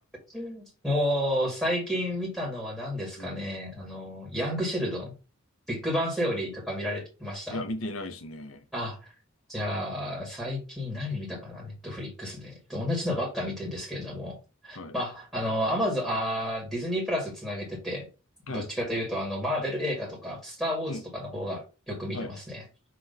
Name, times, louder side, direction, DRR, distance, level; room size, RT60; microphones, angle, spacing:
voice 1, 0.3-5.1 5.7-7.6 8.7-9.0 9.5-14.4 14.6-18.1 18.5-22.6, equal, ahead, 1.8 m, -31 dB
voice 2, 7.5-8.6 14.7-14.9 18.5-18.7 20.9-21.0 22.1-22.3, left 2 dB, 80° left, 0.9 m, -36 dB
6.1 x 3.1 x 5.3 m
head